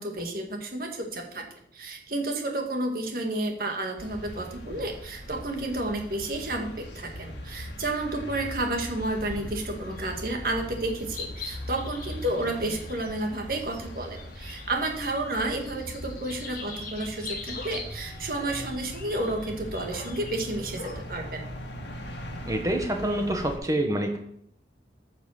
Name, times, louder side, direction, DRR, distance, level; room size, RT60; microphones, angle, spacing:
voice 1, 0.0-1.4 1.7-21.4, right 2 dB, 55° right, 2 dB, 1.9 m, -31 dB
sound 1, 4.0-23.6, equal, 75° left, 2.0 m, -40 dB
sound 2, 9.0-10.3 10.6-14.8 15.0-21.0, left 3 dB, 55° left, 1.7 m, -43 dB
voice 2, 22.4-24.2, right 1 dB, 20° right, 4 dB, 1.3 m, -27 dB
9.7 x 5.9 x 7.3 m, 0.71 s
head